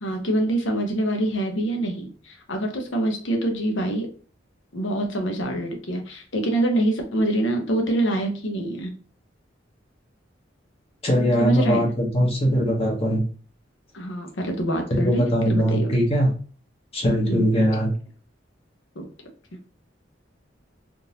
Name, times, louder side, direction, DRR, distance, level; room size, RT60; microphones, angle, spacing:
voice 1, 0.0-4.1 4.7-8.9 11.4-11.9 13.9-16.0 17.3-17.4 19.0-19.1, right 1 dB, 80° left, 3 dB, 0.8 m, -25 dB
voice 2, 11.0-13.2 15.0-16.3 16.9-17.9, equal, 30° left, -1 dB, 0.9 m, -21 dB
3.7 x 2.5 x 2.8 m, 0.41 s
head